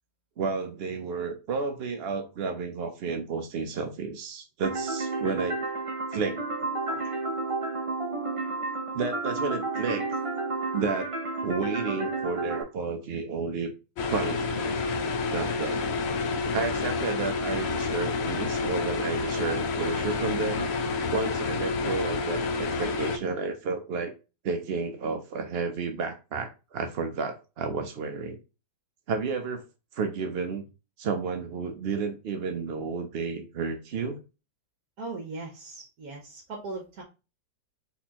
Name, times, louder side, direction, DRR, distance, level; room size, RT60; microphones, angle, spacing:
voice 1, 0.4-5.5 6.1-6.4 6.9-7.0 8.9-10.1 10.7-11.1 11.4-13.7 14.1-14.8 15.3-15.8 16.5-20.7 21.1-24.1 24.4-28.4 29.1-29.6 29.9-30.6 31.0-34.2, right 4 dB, 75° right, 5 dB, 0.5 m, -31 dB
sound 1, 4.6-12.6, right 3 dB, 30° right, 0.7 m, -31 dB
sound 2, 14.0-23.2, left 4 dB, 90° left, 0.5 m, -29 dB
voice 2, 35.0-37.0, right 3 dB, 60° right, 1 dB, 1.3 m, -38 dB
4.2 x 4.1 x 2.9 m, 0.30 s
omnidirectional pair, 1.9 m